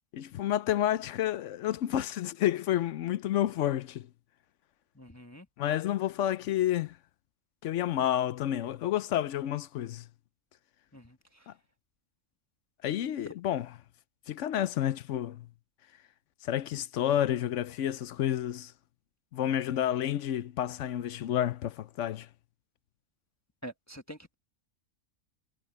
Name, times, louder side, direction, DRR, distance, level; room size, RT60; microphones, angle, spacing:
voice 1, 0.1-4.1 5.6-7.0 7.6-10.1 11.5-11.6 12.8-13.7 14.3-15.5 16.4-18.7 19.3-22.3, left 11 dB, 70° left, 1.0 m, -30 dB
voice 2, 4.9-5.5 10.9-11.5 23.6-24.3, equal, 15° left, 1.2 m, -46 dB
omnidirectional pair, 1.3 m